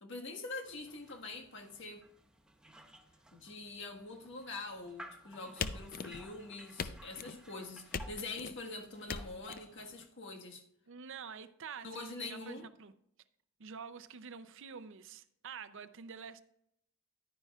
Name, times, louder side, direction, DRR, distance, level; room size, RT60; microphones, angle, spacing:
voice 1, 0.0-2.1 3.3-10.6 11.8-12.6, left 3 dB, 60° left, 1.5 m, -45 dB
sound 1, 0.6-10.1, right 1 dB, 5° right, 0.8 m, -57 dB
sound 2, 5.6-6.4 6.8-7.4 7.9-8.6 9.1-9.6, left 5 dB, 45° left, 0.5 m, -40 dB
voice 2, 10.9-12.9 13.6-16.4, right 6 dB, 65° right, 0.6 m, -47 dB
11.0 x 9.8 x 2.4 m
head